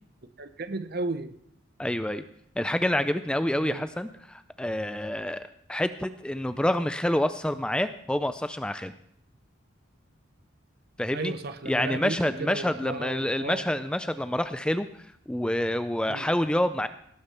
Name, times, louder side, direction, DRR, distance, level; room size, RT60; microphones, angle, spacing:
voice 1, 0.4-1.3 3.6-3.8 11.1-13.6 16.1-16.3, right 3 dB, 50° right, 11 dB, 0.8 m, -34 dB
voice 2, 1.8-2.2 2.6-8.9 11.0-11.3 11.7-14.9 15.3-16.9, left 1 dB, 5° left, 11 dB, 0.3 m, -27 dB
17.5 x 6.4 x 5.7 m, 0.70 s
head